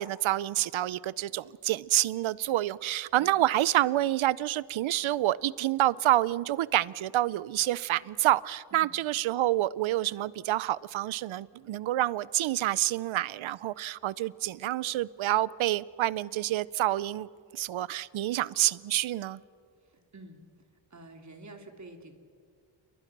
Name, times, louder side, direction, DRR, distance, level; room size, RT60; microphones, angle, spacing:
voice 1, 0.0-17.3 17.5-19.4, right 14 dB, 90° right, 0.7 m, -28 dB
voice 2, 19.8-20.4 20.9-22.2, right 2 dB, 35° right, 3.1 m, -49 dB
29.5 x 23.5 x 6.0 m
cardioid pair, 95°, 46 cm